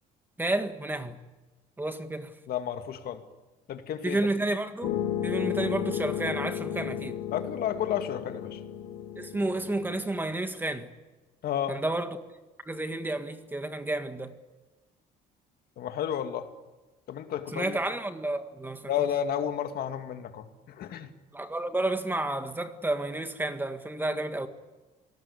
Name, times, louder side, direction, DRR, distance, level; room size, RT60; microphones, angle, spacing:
voice 1, 0.4-1.2 1.8-2.3 4.0-7.2 9.2-10.9 11.7-12.2 12.7-14.3 17.5-19.1 21.3-24.5, right 2 dB, 10° right, 1.8 m, -31 dB
voice 2, 2.5-3.2 3.7-4.2 7.3-8.6 11.4-11.8 15.8-16.5 17.1-17.8 18.9-21.1, left 9 dB, 65° left, 2.3 m, -32 dB
sound 1, 4.8-10.1, left 10 dB, 85° left, 3.9 m, -33 dB
28.0 x 19.0 x 8.5 m
cardioid pair, 110°, 17 cm